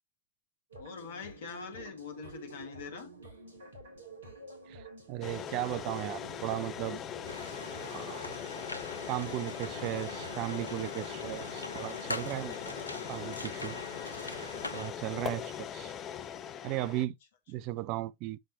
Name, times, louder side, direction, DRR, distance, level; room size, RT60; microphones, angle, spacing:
sound 1, 0.7-11.5, right 3 dB, 70° right, 2.2 m, -50 dB
voice 1, 0.8-3.1 9.8-10.2 17.6-17.7, left 6 dB, 60° left, 1.5 m, -44 dB
voice 2, 4.7-7.0 7.9-8.3 9.1-12.5 13.1-13.8 14.1-15.9 16.6-17.1 17.5-18.4, right 16 dB, 40° right, 0.4 m, -36 dB
sound 2, 5.2-17.1, left 9 dB, 30° left, 0.6 m, -41 dB
sound 3, 7.3-14.9, left 2 dB, 85° left, 0.5 m, -43 dB
7.8 x 5.6 x 2.7 m
figure-of-eight pair, 90°, 0 cm